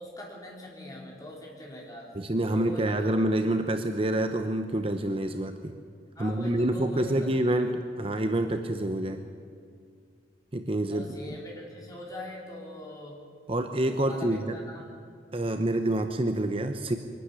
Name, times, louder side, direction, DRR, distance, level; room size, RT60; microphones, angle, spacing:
voice 1, 0.0-2.1 2.5-3.1 6.2-7.7 10.9-13.3 14.0-14.9, left 1 dB, 20° left, -2 dB, 4.1 m, -42 dB
voice 2, 2.1-5.7 6.2-9.2 10.5-11.4 13.5-14.6 15.3-17.0, right 1 dB, 30° right, 7 dB, 0.8 m, -27 dB
23.0 x 12.0 x 9.8 m, 2.1 s
head